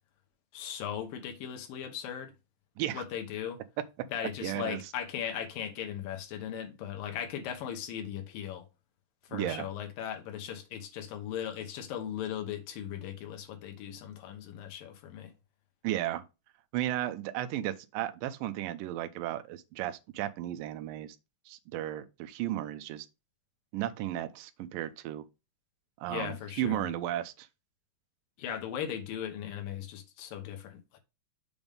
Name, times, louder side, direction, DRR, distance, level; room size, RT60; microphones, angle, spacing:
voice 1, 0.5-2.3 2.9-3.6 4.1-8.7 9.3-15.3 26.1-26.8 28.4-31.0, left 9 dB, 85° left, 2.8 m, -38 dB
voice 2, 4.4-4.8 9.3-9.7 15.8-16.2 16.7-21.2 21.5-23.1 23.7-25.3 26.0-27.5, right 13 dB, 85° right, 2.3 m, -34 dB
7.0 x 3.5 x 5.3 m
omnidirectional pair, 3.9 m